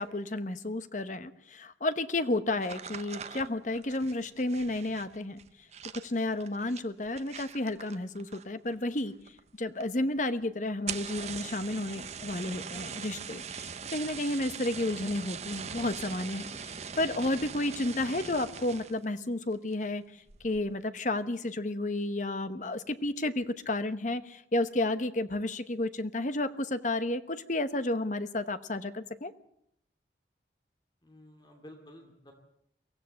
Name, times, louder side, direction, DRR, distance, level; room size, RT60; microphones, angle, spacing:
voice 1, 0.0-5.4 5.9-9.1 9.6-20.0 20.4-29.3, left 2 dB, 40° left, 11 dB, 1.0 m, -32 dB
sound 1, 2.6-8.7 9.0-9.5 9.8-9.9 10.2-10.3 10.7-19.1 19.5-19.9 20.3-20.7, right 6 dB, 35° right, 0.8 m, -41 dB
voice 2, 31.0-32.3, left 1 dB, 25° left, 3 dB, 2.6 m, -52 dB
23.5 x 15.5 x 7.8 m, 0.72 s
head